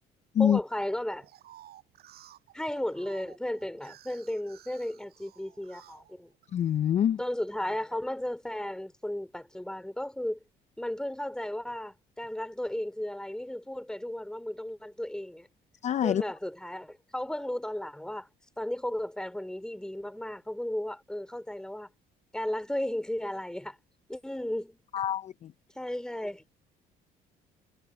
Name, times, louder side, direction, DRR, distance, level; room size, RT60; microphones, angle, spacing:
voice 1, 0.4-1.3 2.5-6.3 7.2-10.4 10.8-15.5 16.0-18.3 18.6-21.9 22.3-23.8 24.1-24.8 25.7-26.4, left 1 dB, 5° left, 3.2 m, -34 dB
sound 1, 1.1-6.9 7.4-8.1, right 13 dB, 65° right, 7.0 m, -55 dB
voice 2, 6.5-7.2 15.8-16.2 24.9-25.5, left 9 dB, 45° left, 0.5 m, -25 dB
cardioid pair, 110°, 17 cm